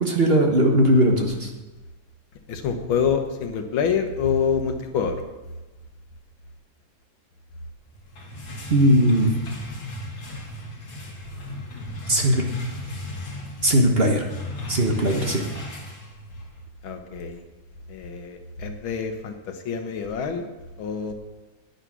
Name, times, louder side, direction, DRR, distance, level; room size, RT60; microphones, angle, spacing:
voice 1, 0.0-1.5 8.7-9.3 12.1-12.5 13.6-14.2 14.7-15.4, right 1 dB, 35° right, 1 dB, 1.3 m, -19 dB
voice 2, 2.5-5.2 16.8-17.4 17.9-19.4 19.7-20.5 20.8-21.1, left 6 dB, 85° left, 6 dB, 2.0 m, -26 dB
sound 1, 7.9-16.6, left 1 dB, 65° left, 3.0 m, -35 dB
10.0 x 9.7 x 6.3 m, 1.1 s
omnidirectional pair, 2.1 m